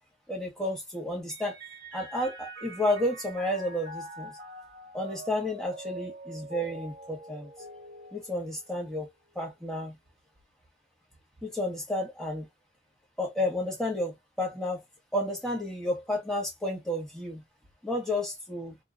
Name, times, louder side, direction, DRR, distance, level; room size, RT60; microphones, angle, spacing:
voice 1, 0.3-1.6 1.9-4.4 4.9-7.5 8.1-9.1 9.3-10.0 11.4-12.5 13.2-14.8 15.1-17.4 17.8-18.8, left 1 dB, 5° left, 1.2 m, -31 dB
Mallet percussion, 1.3-9.0, right 1 dB, 55° right, 1.2 m, -44 dB
3.0 x 2.5 x 2.4 m
head